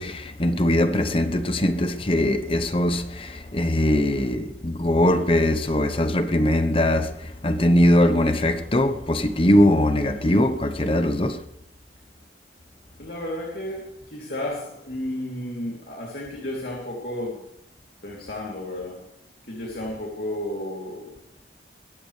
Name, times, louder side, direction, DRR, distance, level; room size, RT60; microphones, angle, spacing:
voice 1, 0.0-11.4, left 1 dB, 30° left, 1.0 m, -21 dB
voice 2, 13.0-17.5 18.0-19.1 19.5-21.2, left 1 dB, 60° left, 3.0 m, -32 dB
21.5 x 16.0 x 3.3 m
head